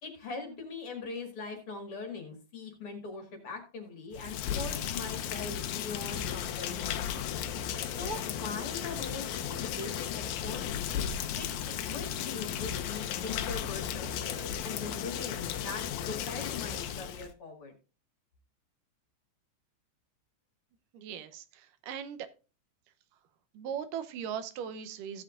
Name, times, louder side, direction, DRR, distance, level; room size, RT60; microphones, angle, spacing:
voice 1, 0.0-7.1 7.9-11.0 11.3-11.5 11.9-17.7, left 4 dB, 45° left, 4 dB, 2.5 m, -41 dB
Rain, 4.1-17.3, left 9 dB, 75° left, 2.0 m, -35 dB
voice 2, 20.9-22.3 23.5-25.2, right 8 dB, 85° right, 10 dB, 2.5 m, -39 dB
15.5 x 8.1 x 2.5 m, 0.32 s
omnidirectional pair, 3.7 m